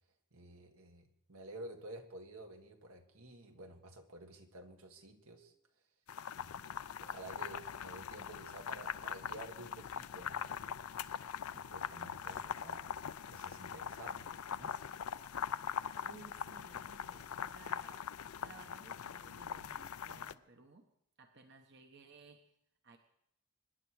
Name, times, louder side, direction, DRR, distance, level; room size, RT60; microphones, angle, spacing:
voice 1, 0.3-5.5 6.4-13.0 13.3-14.8, right 2 dB, 80° right, 4 dB, 1.8 m, -52 dB
sound 1, 6.1-20.3, left 8 dB, 85° left, 0.5 m, -42 dB
voice 2, 16.0-20.9 21.2-22.4 22.8-23.0, right 3 dB, 50° right, 5 dB, 1.0 m, -58 dB
24.5 x 10.0 x 4.8 m, 0.76 s
head